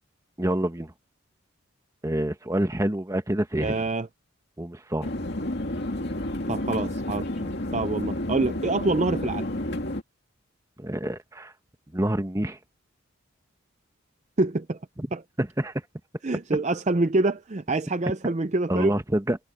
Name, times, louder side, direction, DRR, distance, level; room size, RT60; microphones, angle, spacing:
voice 1, 0.4-0.9 2.0-3.8 4.6-5.1 7.4-7.5 10.8-11.5 11.9-12.6 15.0-15.1 15.4-15.7 18.7-19.4, right 1 dB, 15° right, 1.1 m, -27 dB
voice 2, 3.6-4.1 6.5-7.2 7.7-9.5 14.4-14.8 15.1-15.2 16.2-18.9, right 2 dB, 35° right, 0.6 m, -26 dB
sound 1, 5.0-10.0, left 1 dB, 55° left, 2.4 m, -30 dB
head